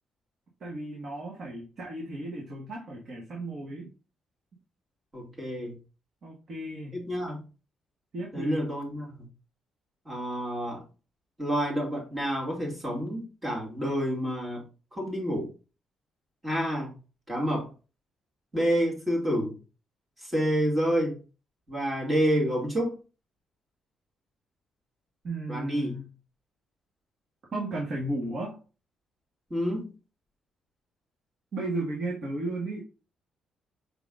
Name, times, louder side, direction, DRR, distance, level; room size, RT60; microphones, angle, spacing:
voice 1, 0.6-3.9 6.2-7.0 8.1-8.7 25.2-26.1 27.5-28.6 31.5-32.8, right 2 dB, 55° right, -2 dB, 1.5 m, -34 dB
voice 2, 5.1-5.7 6.9-7.4 8.3-9.3 10.1-10.8 11.4-14.6 14.9-15.5 16.4-16.9 17.3-17.7 18.5-19.6 20.2-21.2 21.7-22.9 25.5-25.9 29.5-29.9, equal, 20° right, -1 dB, 2.3 m, -28 dB
5.6 x 3.8 x 2.5 m, 0.33 s
cardioid pair, 90°, 0 cm